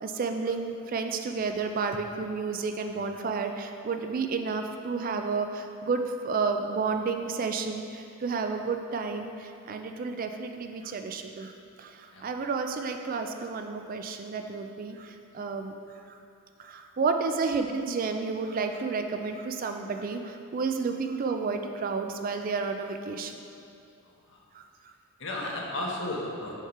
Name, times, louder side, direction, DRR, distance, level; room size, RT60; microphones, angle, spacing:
voice 1, 0.0-11.5 11.8-15.7 16.1-16.2 16.6-23.4 24.5-24.6, right 4 dB, 40° right, 6 dB, 0.3 m, -31 dB
voice 2, 24.0-24.4 25.2-26.5, left 1 dB, 60° left, -2 dB, 1.0 m, -34 dB
6.5 x 5.0 x 4.3 m, 2.5 s
head